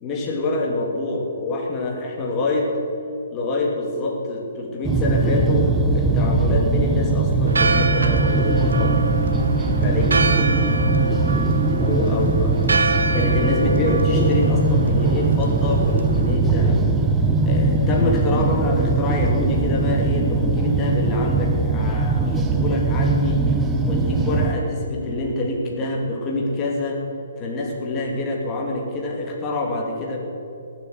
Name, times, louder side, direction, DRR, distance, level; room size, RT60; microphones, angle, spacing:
voice 1, 0.0-2.7 3.3-9.0 9.8-10.2 11.8-12.5 13.1-16.8 17.4-23.4 23.9-27.0 27.4-30.2, left 2 dB, 25° left, -1 dB, 2.9 m, -26 dB
sound 1, 4.8-24.5, right 3 dB, 15° right, 1.2 m, -20 dB
Church bell, 7.5-16.3, right 2 dB, 80° right, 1.1 m, -26 dB
18.5 x 8.6 x 8.0 m, 2.7 s
figure-of-eight pair, 135°, 0 cm